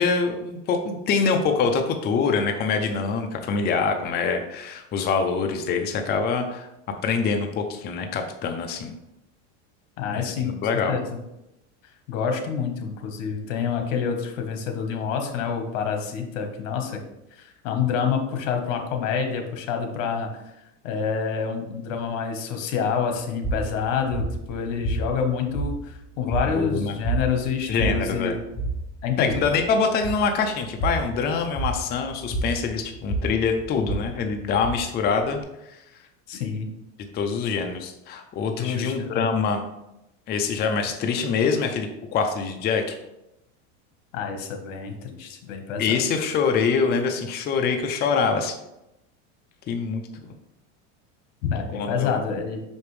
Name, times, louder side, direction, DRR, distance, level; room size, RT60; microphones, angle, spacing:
voice 1, 0.0-6.7 7.0-8.9 10.1-11.0 26.5-27.0 27.7-28.3 29.2-35.8 37.1-39.6 40.3-43.0 45.8-48.5 49.7-50.0 51.7-52.2, left 5 dB, 25° left, 4 dB, 0.5 m, -25 dB
voice 2, 10.0-10.5 10.9-11.0 12.1-17.0 17.3-20.3 20.8-28.4 29.0-29.3 36.3-36.7 38.6-39.3 44.1-46.0 51.5-52.6, left 6 dB, 75° left, 5 dB, 1.2 m, -27 dB
sound 1, 23.4-35.4, right 2 dB, 25° right, 1.9 m, -31 dB
5.8 x 5.2 x 3.2 m, 0.88 s
supercardioid pair, 135°, 38 cm